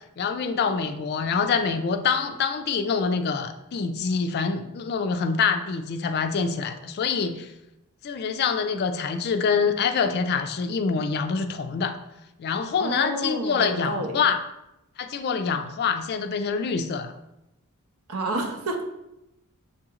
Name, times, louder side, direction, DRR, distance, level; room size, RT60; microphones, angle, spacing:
voice 1, 0.2-7.5 8.0-12.0 12.4-14.4 15.0-17.1, left 5 dB, 45° left, 8 dB, 0.3 m, -25 dB
voice 2, 12.8-14.2 18.1-18.8, right 1 dB, 75° right, 4 dB, 0.7 m, -29 dB
6.8 x 2.9 x 2.4 m, 0.89 s
head